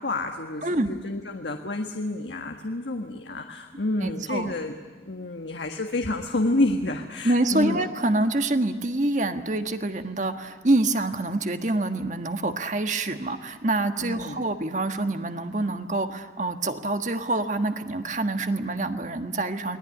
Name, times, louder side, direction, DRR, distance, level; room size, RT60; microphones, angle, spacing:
voice 1, 0.0-4.7 5.0-7.8 14.0-14.4, left 2 dB, 80° left, 4 dB, 1.6 m, -29 dB
voice 2, 4.0-4.5 7.2-19.8, right 2 dB, 45° right, 8 dB, 1.5 m, -26 dB
29.0 x 20.5 x 9.9 m, 1.6 s
head